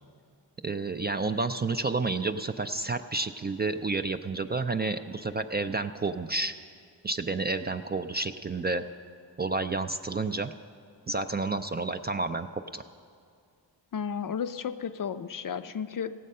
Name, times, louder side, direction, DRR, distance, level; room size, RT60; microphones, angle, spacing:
voice 1, 0.6-6.5 7.0-8.8 9.4-10.5 11.1-12.8, right 3 dB, 25° right, 8 dB, 0.3 m, -30 dB
voice 2, 13.9-16.1, left 7 dB, 50° left, 11 dB, 0.5 m, -33 dB
17.5 x 7.5 x 5.4 m, 2.3 s
cardioid pair, 55°, 44 cm